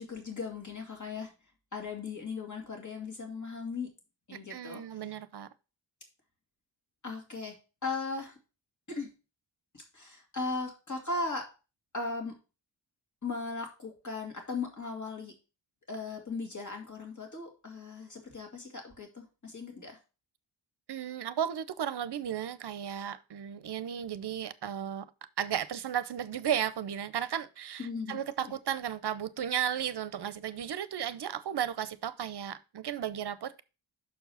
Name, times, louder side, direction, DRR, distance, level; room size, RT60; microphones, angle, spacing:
voice 1, 0.0-1.3 1.7-3.9 4.3-4.8 7.0-7.6 7.8-8.3 8.9-9.1 9.7-11.5 11.9-12.4 13.2-15.3 15.9-20.0 27.8-28.2 28.4-28.5, left 3 dB, 40° left, 2.4 m, -37 dB
voice 2, 4.5-5.5 20.9-25.1 25.4-33.6, right 9 dB, 60° right, 0.7 m, -34 dB
6.2 x 4.7 x 5.6 m
wide cardioid pair, 95°, 47 cm